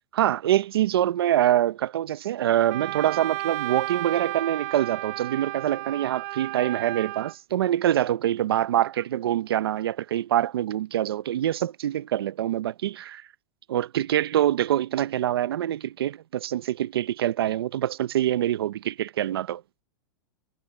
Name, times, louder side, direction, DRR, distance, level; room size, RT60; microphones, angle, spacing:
voice 1, 0.1-13.3 13.7-19.6, right 12 dB, 85° right, 0.8 m, -25 dB
Wind instrument woodwind instrument, 2.7-7.3, right 19 dB, 40° right, 0.8 m, -33 dB
supercardioid pair, 160°, 13 cm